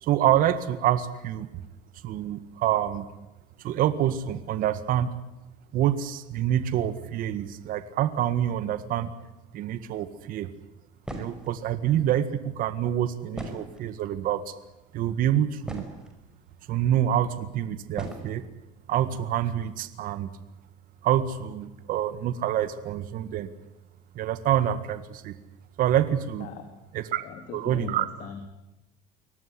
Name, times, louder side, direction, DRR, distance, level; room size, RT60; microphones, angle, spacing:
voice 1, 0.0-1.5 2.0-3.1 3.6-5.1 5.7-9.1 9.5-10.5 11.1-14.5 14.9-15.8 16.7-18.4 18.9-20.3 21.0-23.5 24.2-25.3 25.8-26.5 26.9-27.2 27.5-28.1, right 11 dB, 50° right, 12 dB, 1.8 m, -26 dB
sound 1, 11.0-11.5 13.3-14.1 14.9-15.0 15.4-16.2 17.1-17.2 17.9-18.3, right 1 dB, 5° right, 5.6 m, -38 dB
voice 2, 26.4-26.8 27.2-28.5, left 7 dB, 55° left, 6 dB, 3.2 m, -40 dB
24.5 x 18.5 x 9.9 m, 0.98 s
cardioid pair, 130°, 18 cm